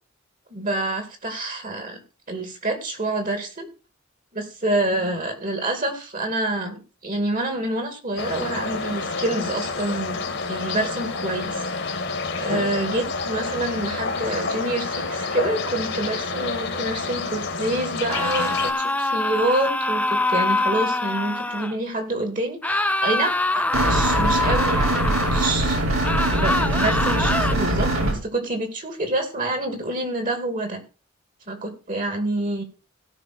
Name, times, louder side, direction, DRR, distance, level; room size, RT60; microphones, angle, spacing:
voice 1, 0.5-2.0 2.3-3.7 4.3-11.6 12.3-25.8 26.3-30.8 31.5-32.6, right 2 dB, 40° right, 6 dB, 2.6 m, -27 dB
sound 1, 8.2-18.7, left 4 dB, 55° left, 2.0 m, -28 dB
sound 2, 18.1-21.7 22.6-25.5 26.0-27.5, left 2 dB, 5° left, 0.5 m, -24 dB
sound 3, 23.7-28.1, right 1 dB, 75° right, 4.9 m, -22 dB
17.0 x 5.8 x 4.3 m, 0.34 s
head